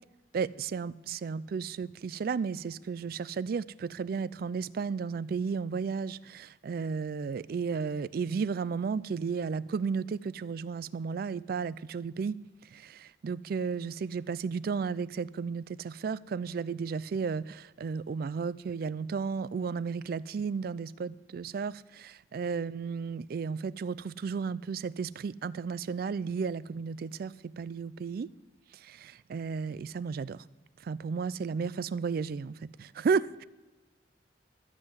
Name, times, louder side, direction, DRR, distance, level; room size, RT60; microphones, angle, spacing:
voice 1, 0.3-12.4 12.7-28.3 28.7-30.4 30.8-33.4, right 5 dB, 55° right, 0.3 m, -33 dB
13.0 x 5.7 x 8.0 m
head